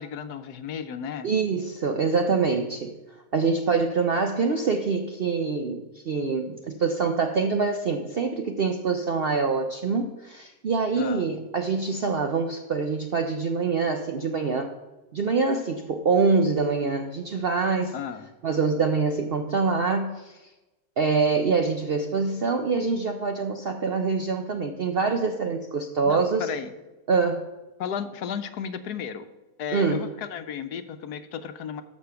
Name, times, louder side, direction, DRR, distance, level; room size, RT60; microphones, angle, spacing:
voice 1, 0.0-1.3 10.9-11.3 17.9-18.3 26.0-26.7 27.8-29.3 29.6-31.8, left 7 dB, 75° left, 10 dB, 1.2 m, -34 dB
voice 2, 1.2-3.0 3.3-14.7 15.1-18.0 18.4-20.4 21.0-26.5 27.1-27.5 29.7-30.1, right 4 dB, 65° right, 5 dB, 0.6 m, -25 dB
11.5 x 5.2 x 6.9 m, 1.1 s
omnidirectional pair, 1.8 m